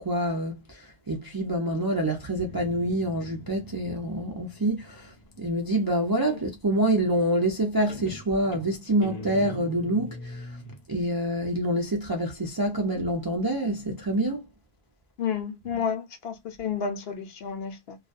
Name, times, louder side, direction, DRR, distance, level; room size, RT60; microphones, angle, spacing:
voice 1, 0.0-10.5 10.9-14.4 15.7-15.8, right 1 dB, 40° right, 0.3 m, -27 dB
Guitar, 2.2-5.7 7.3-7.6 7.9-10.8, left 1 dB, 45° left, 0.6 m, -42 dB
voice 2, 15.2-18.0, left 7 dB, 70° left, 0.8 m, -31 dB
2.3 x 2.2 x 2.4 m
omnidirectional pair, 1.1 m